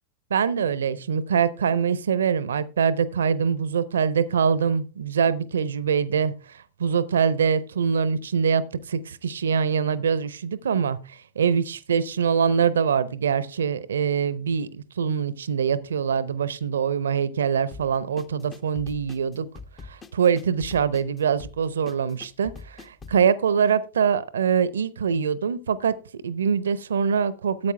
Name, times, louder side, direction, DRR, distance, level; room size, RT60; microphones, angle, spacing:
voice 1, 0.3-6.3 6.8-19.5 19.9-25.9 26.2-27.7, right 7 dB, 65° right, 0.7 m, -24 dB
sound 1, 17.7-23.2, left 4 dB, 20° left, 0.9 m, -43 dB
14.0 x 8.5 x 3.3 m
figure-of-eight pair, 90°, 0 cm